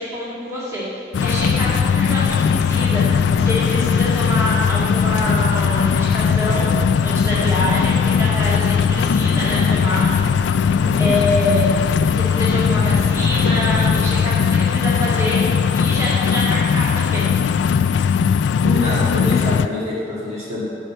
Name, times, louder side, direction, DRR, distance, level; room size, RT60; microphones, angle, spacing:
voice 1, 0.0-6.7 7.0-10.1 11.0-11.7 12.1-15.4 15.7-17.3, left 1 dB, 15° right, -9 dB, 2.2 m, -25 dB
sound 1, 1.1-19.7, left 6 dB, 85° left, 0.3 m, -18 dB
sound 2, 1.1-14.4, equal, 5° left, 2.8 m, -34 dB
voice 2, 10.7-11.1 18.6-20.6, left 2 dB, 35° right, -7 dB, 2.2 m, -25 dB
10.0 x 5.5 x 7.4 m, 2.3 s
head